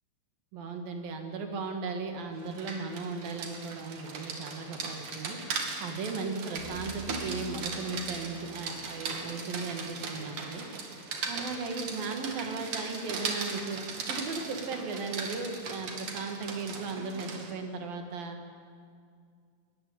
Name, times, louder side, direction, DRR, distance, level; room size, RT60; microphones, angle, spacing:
voice 1, 0.5-5.4 5.8-10.7 11.3-18.4, right 4 dB, 75° right, 4 dB, 3.8 m, -36 dB
Rain, 2.4-17.5, right 4 dB, 60° right, 3.7 m, -38 dB
sound 1, 6.5-9.9 10.2-10.3, right 1 dB, 55° left, 6.9 m, -50 dB
22.0 x 20.5 x 8.8 m, 2.2 s
omnidirectional pair, 4.2 m